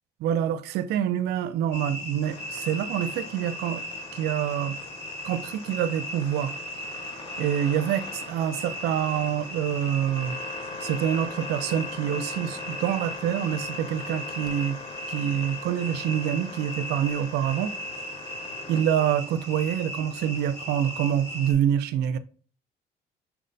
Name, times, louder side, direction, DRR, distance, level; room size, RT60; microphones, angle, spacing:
voice 1, 0.2-3.8 4.1-4.8 5.2-6.5 7.4-10.4 10.8-14.8 15.1-17.7 18.7-22.2, right 10 dB, 75° right, 0.4 m, -26 dB
sound 1, 1.7-21.5, left 1 dB, 80° left, 2.0 m, -37 dB
sound 2, 2.2-18.8, left 3 dB, 30° left, 0.7 m, -42 dB
5.7 x 2.1 x 3.9 m
cardioid pair, 110°, 17 cm